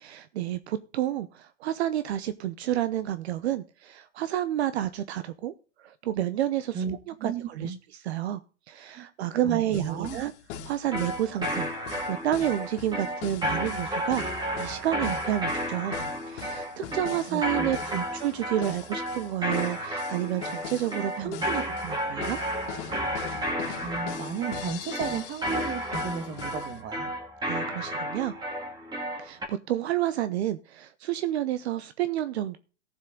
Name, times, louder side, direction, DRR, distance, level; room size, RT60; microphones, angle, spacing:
voice 1, 0.0-5.5 5.8-8.4 8.7-10.3 10.6-11.7 12.1-14.2 14.6-15.9 16.3-22.4 27.4-28.3 29.2-32.6, right 12 dB, 65° right, 13 dB, 0.9 m, -30 dB
voice 2, 6.7-7.8 9.0-9.1 9.4-10.2 17.3-17.7 17.9-18.0 21.2-21.4 23.8-27.1, right 6 dB, 30° right, 11 dB, 1.8 m, -34 dB
sound 1, 9.7-18.4 18.6-21.0 21.3-26.7, left 9 dB, 50° left, 2.5 m, -41 dB
sound 2, 10.9-29.5, equal, 10° right, 2.1 m, -32 dB
14.5 x 7.4 x 3.8 m, 0.37 s
hypercardioid pair, 135°, 35 cm